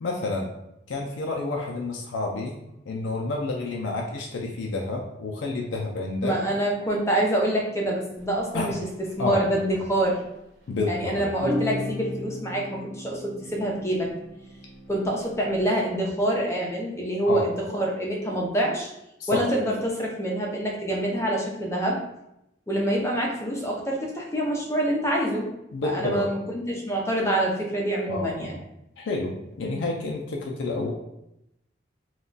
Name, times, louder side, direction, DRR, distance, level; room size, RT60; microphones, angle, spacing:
voice 1, 0.0-0.5 0.9-2.6 2.9-6.4 8.5-8.8 9.2-9.4 10.7-11.3 17.3-17.5 19.2-19.4 25.7-26.3 28.1-28.6 29.0-30.9, left 3 dB, 85° left, 0 dB, 0.4 m, -29 dB
voice 2, 6.2-8.7 9.2-10.2 10.9-14.1 14.9-18.9 19.3-22.0 22.7-25.5 25.8-28.6, right 1 dB, 15° left, -2 dB, 0.5 m, -26 dB
sound 1, 8.2-8.3 8.7-8.9 9.7-10.1 11.4-15.7, left 1 dB, 70° right, 0.7 m, -35 dB
2.3 x 2.2 x 3.8 m, 0.84 s
head